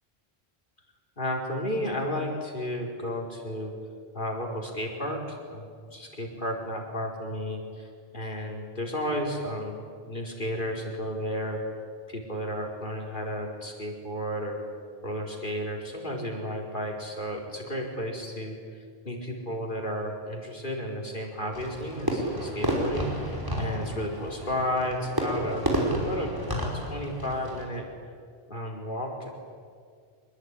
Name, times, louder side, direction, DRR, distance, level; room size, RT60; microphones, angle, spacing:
voice 1, 1.2-3.7 4.1-9.8 10.1-11.6 12.1-14.6 15.0-18.6 19.0-25.7 26.0-26.3 26.7-27.8 28.5-29.3, equal, 55° left, 0 dB, 4.9 m, -33 dB
Fireworks, 21.5-27.6, right 1 dB, 20° right, 5.3 m, -30 dB
25.0 x 21.5 x 10.0 m, 2.1 s
omnidirectional pair, 1.1 m